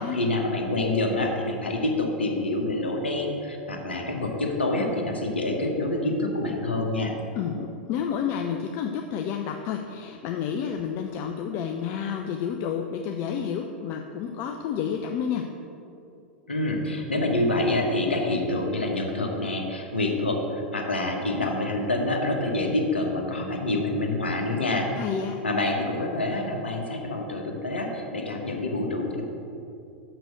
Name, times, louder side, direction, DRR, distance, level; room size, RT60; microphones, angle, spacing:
voice 1, 0.1-7.1 16.5-24.9 25.4-29.2, left 2 dB, 75° left, 2 dB, 1.2 m, -27 dB
voice 2, 7.3-15.4 25.0-25.4, left 7 dB, 40° left, 4 dB, 0.5 m, -30 dB
6.4 x 6.1 x 6.6 m, 2.7 s
figure-of-eight pair, 95°, 6 cm